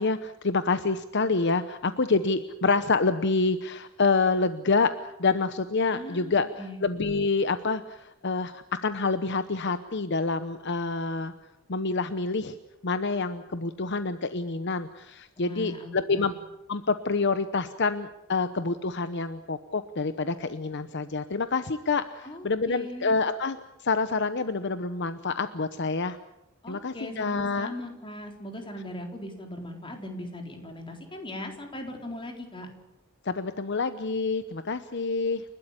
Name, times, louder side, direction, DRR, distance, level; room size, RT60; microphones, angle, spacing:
voice 1, 0.0-6.5 6.8-11.3 11.7-12.6 12.8-16.3 16.7-26.2 26.7-27.7 33.2-35.4, left 4 dB, 60° left, 11 dB, 0.9 m, -27 dB
voice 2, 5.9-6.8 15.4-16.3 22.2-23.2 26.6-32.7, left 1 dB, 25° left, 3 dB, 4.0 m, -39 dB
30.0 x 12.5 x 9.9 m, 0.90 s
head